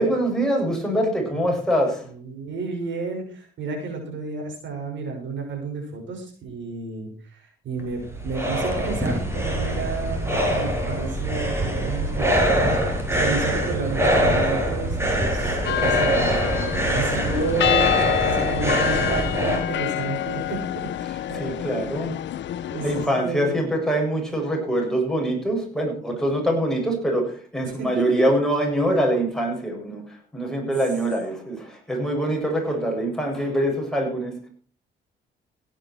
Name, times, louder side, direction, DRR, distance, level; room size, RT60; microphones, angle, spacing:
voice 1, 0.0-2.1 21.3-22.2 22.8-34.5, right 1 dB, 5° left, 0 dB, 7.3 m, -24 dB
voice 2, 2.0-12.8 13.1-18.0 18.2-21.9 22.5-23.5 27.6-28.2, right 4 dB, 70° right, 2 dB, 6.4 m, -31 dB
sound 1, 7.8-19.6, equal, 15° right, 5.9 m, -23 dB
sound 2, 15.6-23.1, left 12 dB, 65° left, 0.8 m, -27 dB
17.0 x 11.0 x 4.8 m, 0.40 s
cardioid pair, 90°, 20 cm